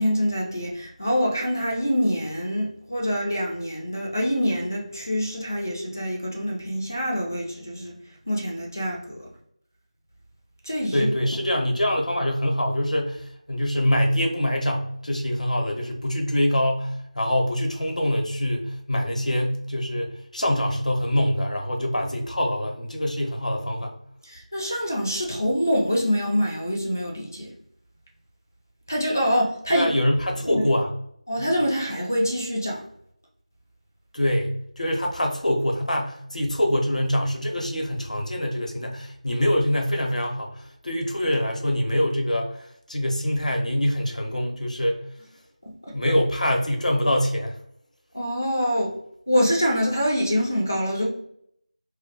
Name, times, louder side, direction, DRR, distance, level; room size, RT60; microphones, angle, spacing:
voice 1, 0.0-8.0 8.3-9.2 10.6-11.1 24.2-27.5 28.9-29.9 30.4-30.7 31.3-32.8 45.7-46.0 48.1-48.9 49.3-51.1, equal, 25° left, 1 dB, 0.4 m, -25 dB
voice 2, 10.9-24.0 29.7-30.9 31.4-31.5 34.1-45.0 45.9-47.6, left 1 dB, 75° left, 2 dB, 0.7 m, -24 dB
2.2 x 2.1 x 2.7 m, 0.69 s
figure-of-eight pair, 180°, 4 cm